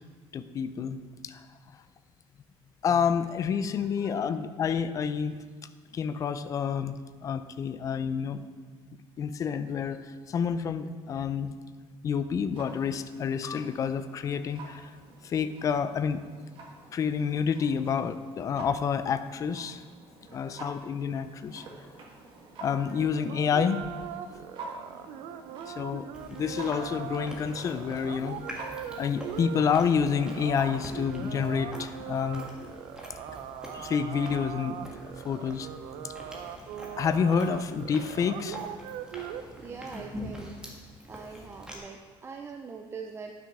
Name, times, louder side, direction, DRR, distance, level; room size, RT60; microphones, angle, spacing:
voice 1, 0.3-1.5 2.8-5.4 5.9-8.5 9.2-11.6 12.0-14.9 15.2-16.2 16.9-19.8 20.3-21.6 22.6-23.8 25.7-32.5 33.7-34.9 35.2-35.7 36.0-36.1 37.0-38.6, left 6 dB, 35° left, 11 dB, 0.4 m, -29 dB
voice 2, 3.8-4.2 39.6-40.7 41.1-43.3, right 5 dB, 25° right, 3 dB, 0.5 m, -43 dB
Clock, 12.5-31.1, right 3 dB, 50° right, 1.7 m, -48 dB
sound 1, 22.9-39.4, right 10 dB, 85° right, 0.6 m, -40 dB
Chewing mastication, 26.1-41.8, equal, 5° right, 1.5 m, -45 dB
11.0 x 6.2 x 4.8 m, 1.5 s
cardioid pair, 150°, 10 cm